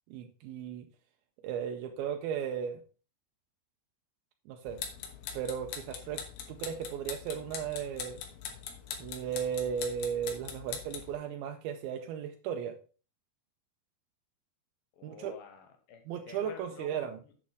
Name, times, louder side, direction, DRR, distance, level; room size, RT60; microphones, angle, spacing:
voice 1, 0.1-0.9 1.4-2.8 4.5-4.8 5.3-6.2 6.5-8.2 9.0-12.8 15.0-15.3 16.1-17.2, right 8 dB, 80° right, 5 dB, 2.5 m, -36 dB
sound 1, 4.7-11.1, left 7 dB, 85° left, 3.2 m, -42 dB
voice 2, 15.0-17.4, left 7 dB, 70° left, 6 dB, 2.8 m, -50 dB
8.5 x 7.1 x 3.5 m, 0.38 s
omnidirectional pair, 4.3 m